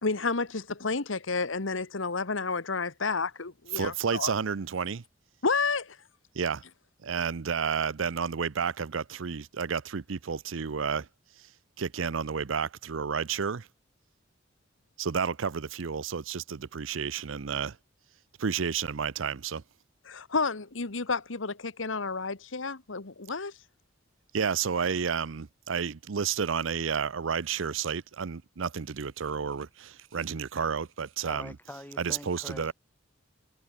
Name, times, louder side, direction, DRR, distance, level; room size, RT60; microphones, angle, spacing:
voice 1, 0.0-4.3 5.4-6.0 20.1-23.5, left 4 dB, 75° left, 1.4 m, -30 dB
voice 2, 3.7-5.0 6.3-6.6 7.0-11.1 11.4-11.5 11.8-13.7 15.0-17.8 18.4-19.6 24.3-31.5 32.0-32.7, right 6 dB, 80° right, 0.6 m, -31 dB
voice 3, 31.2-32.7, left 1 dB, 10° left, 5.4 m, -44 dB
head